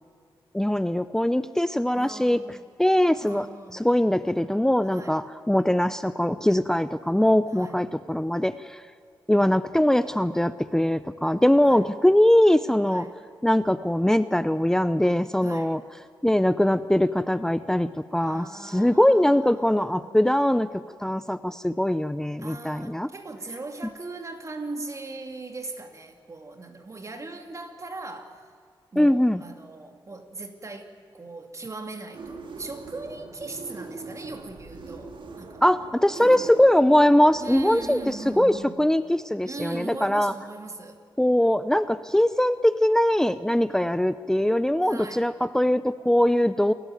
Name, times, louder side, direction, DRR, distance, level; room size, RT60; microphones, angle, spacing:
voice 1, 0.5-2.4 2.8-3.5 3.7-8.8 9.3-13.1 13.4-15.8 16.2-20.7 21.0-23.1 29.0-29.4 35.6-40.3 41.2-46.7, left 1 dB, 5° left, 14 dB, 0.6 m, -22 dB
voice 2, 1.9-2.7 3.2-3.8 4.9-5.2 7.5-7.8 11.6-11.9 12.9-13.1 15.4-15.7 18.2-20.2 22.4-28.4 28.9-35.7 36.2-36.5 37.4-38.9 39.4-41.0 44.8-45.3, right 3 dB, 35° right, 5 dB, 2.8 m, -39 dB
sound 1, 32.1-38.6, right 4 dB, 70° right, 2.5 m, -41 dB
28.0 x 13.5 x 9.2 m, 2.1 s
cardioid pair, 85°, 9 cm